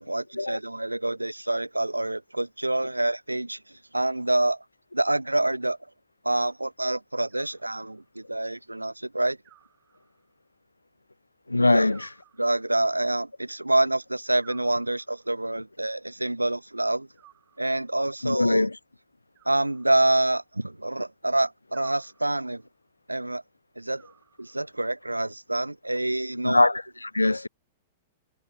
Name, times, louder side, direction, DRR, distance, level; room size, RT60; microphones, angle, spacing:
voice 1, 0.0-4.6 4.9-5.8 6.2-9.4 11.7-11.9 12.4-17.1 17.6-18.7 19.5-22.6 23.1-23.4 23.8-24.0 24.4-26.7, right 1 dB, 85° right, 1.7 m, -27 dB
Animal, 7.3-8.2 9.4-10.4 11.9-13.0 14.4-15.4 17.1-18.1 19.3-20.4 21.7-22.6 24.0-24.9, right 15 dB, 30° right, 6.2 m, -56 dB
voice 2, 11.5-12.1 18.2-18.8 26.4-27.5, left 2 dB, 85° left, 1.0 m, -22 dB
figure-of-eight pair, 100°, 0 cm